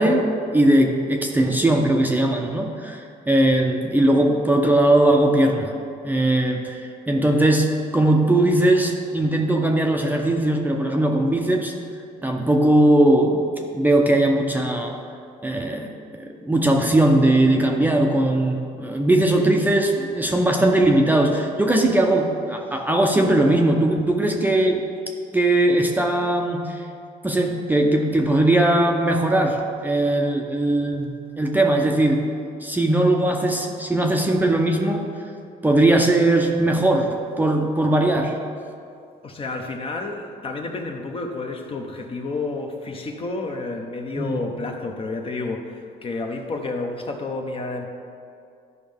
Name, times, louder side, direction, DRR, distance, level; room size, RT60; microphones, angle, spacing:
voice 1, 0.0-5.7 6.0-11.7 12.2-13.5 13.7-15.0 15.4-15.9 16.1-24.8 25.3-26.8 27.2-32.3 32.6-35.1 35.6-38.4 44.2-44.4, right 1 dB, 10° right, 1 dB, 0.7 m, -19 dB
voice 2, 39.2-47.9, left 3 dB, 35° left, 3 dB, 0.9 m, -30 dB
12.0 x 5.3 x 3.5 m, 2.4 s
cardioid pair, 110°, 17 cm